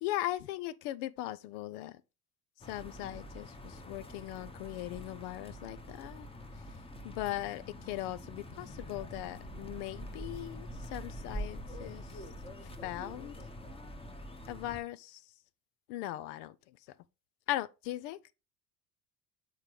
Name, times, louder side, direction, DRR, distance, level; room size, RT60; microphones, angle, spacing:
voice 1, 0.0-2.0 2.7-6.3 7.0-12.3 12.8-13.4 14.5-15.2 15.9-16.6 17.5-18.2, left 14 dB, 75° left, 0.7 m, -39 dB
sound 1, 2.6-14.8, equal, 10° left, 0.9 m, -45 dB
8.0 x 3.8 x 3.1 m
hypercardioid pair, 70°, 47 cm